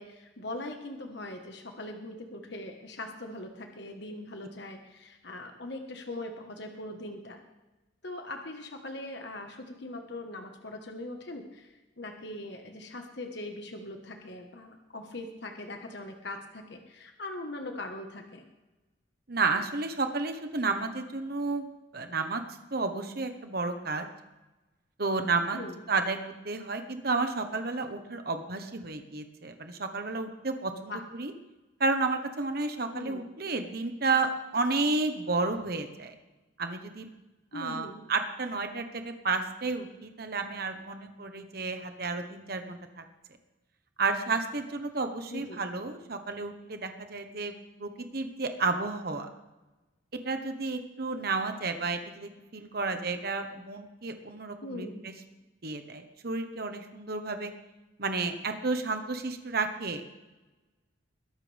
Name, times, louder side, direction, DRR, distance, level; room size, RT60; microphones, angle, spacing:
voice 1, 0.0-7.4 8.0-18.5 25.5-25.9 30.9-31.0 32.9-33.2 37.5-38.0 45.3-45.6 54.6-55.0, left 2 dB, 60° left, 4 dB, 1.5 m, -41 dB
voice 2, 19.3-21.7 21.9-22.4 22.7-24.1 25.0-25.6 25.9-31.3 31.8-36.1 36.6-37.1 37.5-43.0 44.0-47.5 47.8-49.3 50.2-55.1 55.6-57.5 58.0-60.0, right 3 dB, 50° right, 6 dB, 1.2 m, -31 dB
21.5 x 12.0 x 3.5 m, 1.1 s
head